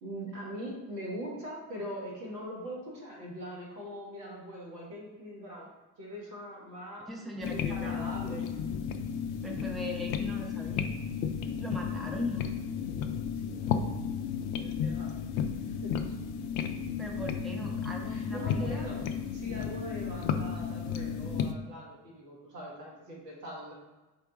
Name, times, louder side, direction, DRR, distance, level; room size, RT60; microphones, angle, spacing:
voice 1, 0.0-8.4 11.8-12.0 13.3-13.8 14.4-15.1 15.6-16.0 18.1-19.0 19.3-23.7, equal, 80° right, -3 dB, 1.3 m, -42 dB
voice 2, 7.1-8.4 9.4-10.9 11.6-12.5 17.0-18.9, equal, ahead, 1 dB, 0.5 m, -39 dB
sound 1, 7.4-21.5, left 7 dB, 50° left, 0.5 m, -33 dB
4.7 x 2.2 x 3.8 m, 1.1 s
figure-of-eight pair, 55°, 49 cm